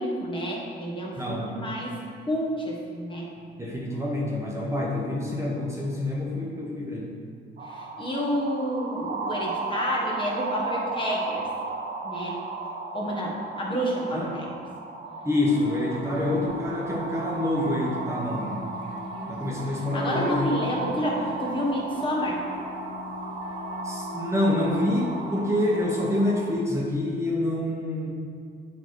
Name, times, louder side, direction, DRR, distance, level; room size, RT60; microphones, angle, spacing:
voice 1, 0.0-1.9 2.3-3.3 7.6-11.5 12.0-12.4 12.9-14.4 19.0-19.4 19.9-22.4, equal, 25° left, -3 dB, 1.2 m, -29 dB
voice 2, 1.2-1.6 3.6-7.1 14.1-14.3 15.2-18.6 19.3-20.7 23.8-28.1, left 1 dB, 15° right, -4 dB, 1.0 m, -27 dB
sound 1, 7.6-26.5, right 3 dB, 45° right, 0.7 m, -35 dB
sound 2, 15.5-25.8, left 4 dB, 70° left, 0.9 m, -41 dB
7.8 x 3.0 x 4.7 m, 2.2 s
cardioid pair, 90°, 20 cm